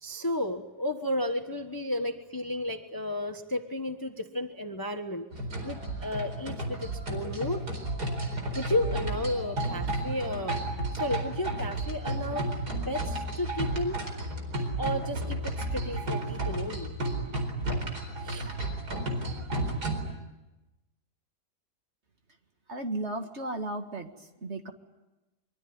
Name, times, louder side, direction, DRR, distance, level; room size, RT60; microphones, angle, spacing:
voice 1, 0.0-5.3 5.6-7.6 8.5-10.6 10.9-12.5 12.9-14.0 14.8-16.9 18.2-18.5, left 1 dB, 15° left, 6 dB, 1.2 m, -33 dB
sound 1, 5.3-20.1, right 1 dB, 70° right, 5.0 m, -32 dB
voice 2, 22.7-24.7, right 2 dB, 40° right, 5 dB, 2.3 m, -35 dB
25.0 x 24.0 x 9.6 m, 1.0 s
omnidirectional pair, 1.8 m